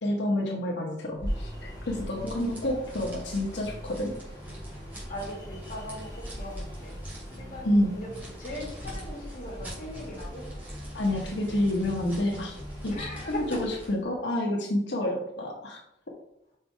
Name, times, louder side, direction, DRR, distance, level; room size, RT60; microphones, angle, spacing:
voice 1, 0.0-4.2 7.6-8.0 10.9-12.5 12.8-15.8, left 1 dB, 90° left, -1 dB, 1.1 m, -29 dB
sound 1, 1.1-14.0, equal, 10° right, 2.7 m, -41 dB
sound 2, 1.3-3.1 3.6-6.2 6.6-9.2 9.6-12.1 12.6-13.2, equal, 70° left, 1.6 m, -46 dB
Ocean, 1.3-13.9, equal, 20° left, 2.2 m, -49 dB
voice 2, 2.1-2.8 5.1-6.9 7.4-8.1 8.4-10.4 12.8-13.6, left 1 dB, 50° left, -3 dB, 2.5 m, -39 dB
5.7 x 4.9 x 4.5 m, 0.80 s
head